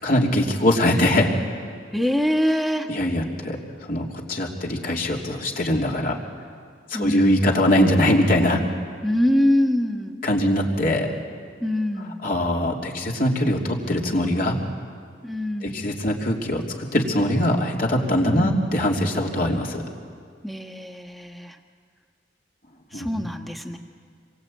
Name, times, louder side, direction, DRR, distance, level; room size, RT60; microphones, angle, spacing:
voice 1, 0.0-1.3 2.9-3.6 3.9-6.2 6.9-8.6 10.2-11.1 12.2-14.6 15.6-16.6 16.9-19.8 22.9-23.1, left 1 dB, 50° left, 0 dB, 3.2 m, -22 dB
voice 2, 1.9-2.9 6.9-7.5 9.0-10.2 11.6-12.2 15.2-15.9 18.2-18.6 20.4-21.6 22.9-23.8, left 1 dB, ahead, 4 dB, 1.5 m, -24 dB
28.0 x 23.0 x 8.7 m, 2.2 s
head